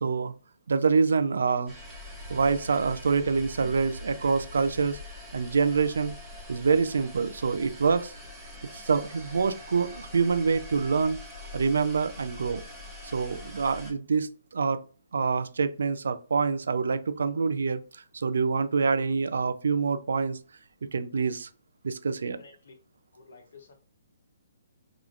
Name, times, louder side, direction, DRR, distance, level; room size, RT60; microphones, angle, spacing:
voice 1, 0.0-0.3 0.7-1.7 2.3-5.0 5.3-6.1 6.5-8.1 8.7-11.2 11.5-12.6 13.1-14.8 15.1-20.4 20.9-21.5 21.8-22.4, right 5 dB, 75° right, 0.3 m, -26 dB
sound 1, 1.7-13.9, left 1 dB, 10° right, 0.8 m, -43 dB
voice 2, 22.4-22.7 23.1-23.7, left 4 dB, 65° left, 0.6 m, -52 dB
3.5 x 2.3 x 2.3 m
hypercardioid pair, 140°, 0 cm